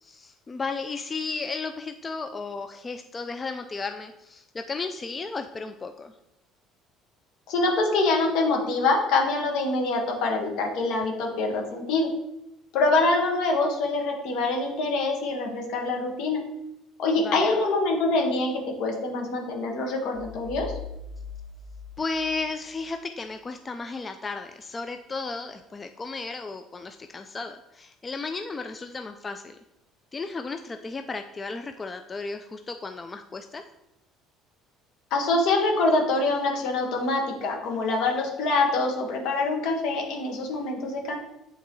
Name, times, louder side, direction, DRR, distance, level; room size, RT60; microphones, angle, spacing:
voice 1, 0.0-6.1 17.2-17.5 22.0-29.6 30.1-33.6, left 4 dB, 25° left, 7 dB, 0.4 m, -34 dB
voice 2, 7.5-12.1 12.7-16.4 17.0-20.7 35.1-41.2, left 3 dB, 70° left, 1 dB, 1.5 m, -25 dB
sound 1, 20.1-23.0, left 4 dB, 70° right, 0.6 m, -41 dB
8.1 x 3.9 x 3.1 m, 0.87 s
supercardioid pair, 90°, 0 cm